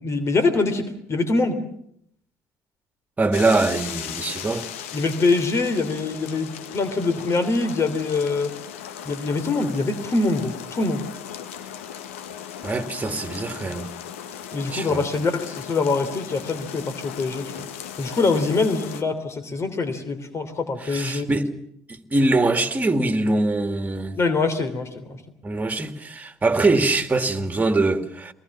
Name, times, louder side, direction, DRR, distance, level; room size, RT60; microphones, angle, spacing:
voice 1, 0.0-1.6 4.9-8.5 9.0-11.0 14.5-17.7 18.0-21.3 24.2-25.2, left 3 dB, 40° left, 3.2 m, -24 dB
voice 2, 3.2-4.7 12.6-13.9 14.7-15.0 20.8-21.5 21.9-24.2 25.4-28.3, right 2 dB, 20° right, 2.4 m, -23 dB
sound 1, 3.3-19.0, left 9 dB, 85° left, 1.3 m, -37 dB
24.0 x 19.5 x 7.3 m
hypercardioid pair, 60°, 7 cm